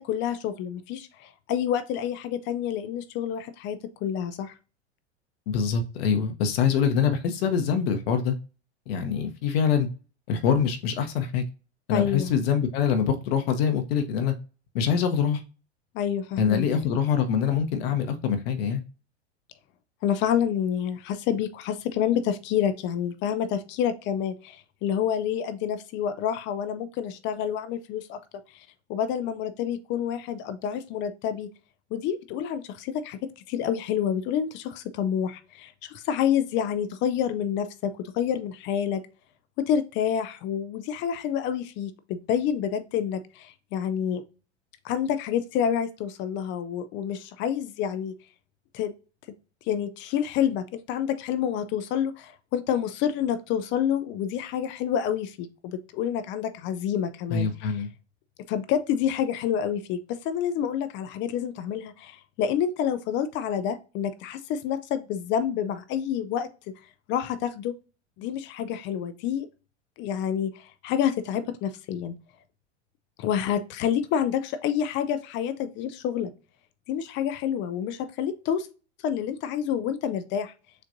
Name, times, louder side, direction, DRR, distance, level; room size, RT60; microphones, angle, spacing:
voice 1, 0.0-4.5 11.9-12.3 15.9-16.6 20.0-28.2 28.5-31.5 31.9-39.0 39.6-44.2 44.8-48.1 48.7-48.9 49.7-57.5 58.5-66.7 67.1-67.8 68.2-69.5 70.0-72.1 73.2-76.3 76.9-78.7 79.0-80.5, left 9 dB, 35° left, 11 dB, 0.4 m, -28 dB
voice 2, 5.5-8.4 8.9-9.9 10.3-11.4 11.9-14.3 14.7-15.4 16.4-18.8 57.3-57.9, left 7 dB, 55° left, 6 dB, 0.8 m, -24 dB
6.6 x 2.5 x 2.6 m, 0.33 s
hypercardioid pair, 95°, 35 cm